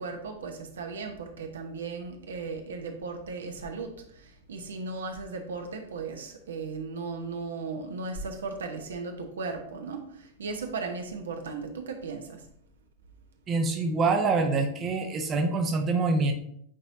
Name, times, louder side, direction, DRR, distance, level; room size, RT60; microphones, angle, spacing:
voice 1, 0.0-12.4, right 4 dB, 65° right, 5 dB, 0.9 m, -36 dB
voice 2, 13.5-16.3, right 3 dB, 25° right, 5 dB, 0.7 m, -25 dB
8.6 x 4.4 x 2.6 m, 0.69 s
figure-of-eight pair, 90°, 0 cm